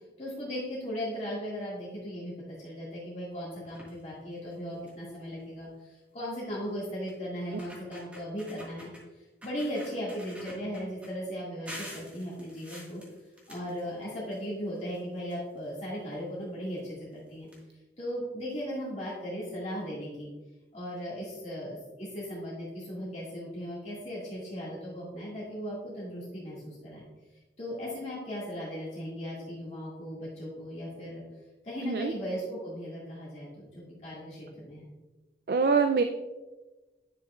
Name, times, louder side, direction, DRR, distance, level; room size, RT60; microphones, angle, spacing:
voice 1, 0.2-8.9 9.1-13.0 13.5-17.5 18.0-20.3 20.7-27.0 27.6-31.2 31.6-34.8, equal, 40° left, -8 dB, 1.9 m, -37 dB
sound 1, 3.6-4.0 4.5-4.6 4.9-5.1 6.3-6.4 7.1-7.2 7.5-9.0 9.4-11.1 11.7-14.4 14.7-15.8 16.7-16.8 17.1-17.2 17.5-17.6, equal, 10° right, 1.6 m, -47 dB
voice 2, 35.5-36.0, right 5 dB, 55° right, 7 dB, 0.3 m, -24 dB
10.0 x 6.0 x 2.4 m, 1.1 s
head